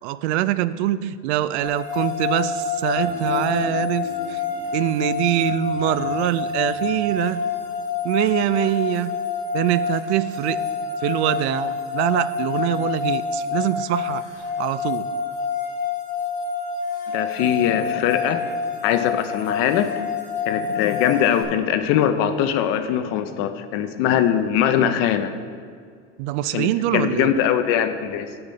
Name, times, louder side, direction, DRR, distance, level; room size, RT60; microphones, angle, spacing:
voice 1, 0.0-4.4 4.7-7.4 8.0-9.1 9.5-10.6 11.0-14.2 14.6-15.1 26.2-27.3, right 13 dB, 65° right, 15 dB, 0.5 m, -24 dB
sound 1, 1.6-21.4, left 6 dB, 20° left, 2.7 m, -27 dB
sound 2, 2.9-8.3, left 4 dB, 85° left, 2.3 m, -39 dB
voice 2, 17.1-18.5 18.8-19.9 20.5-25.3 26.5-28.3, left 9 dB, 40° left, 9 dB, 0.5 m, -21 dB
9.8 x 6.9 x 5.2 m, 2.1 s
supercardioid pair, 165°, 36 cm